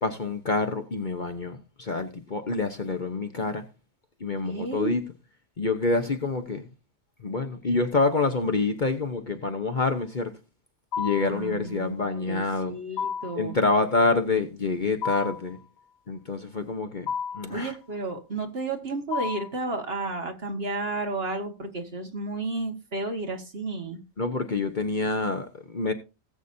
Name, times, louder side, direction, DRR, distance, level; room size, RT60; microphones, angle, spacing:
voice 1, 0.0-3.6 4.2-5.0 5.6-6.7 7.2-10.3 11.0-12.8 13.4-15.6 16.1-17.1 17.3-17.7 24.2-25.9, left 3 dB, 40° left, 1.0 m, -27 dB
voice 2, 4.4-5.0 11.2-13.5 17.5-24.0, right 3 dB, 45° right, 1.9 m, -32 dB
sound 1, 10.9-11.4 13.0-13.5 15.0-15.5 17.1-17.5 19.1-19.6, left 6 dB, 85° left, 1.2 m, -31 dB
18.5 x 8.2 x 2.7 m
omnidirectional pair, 1.4 m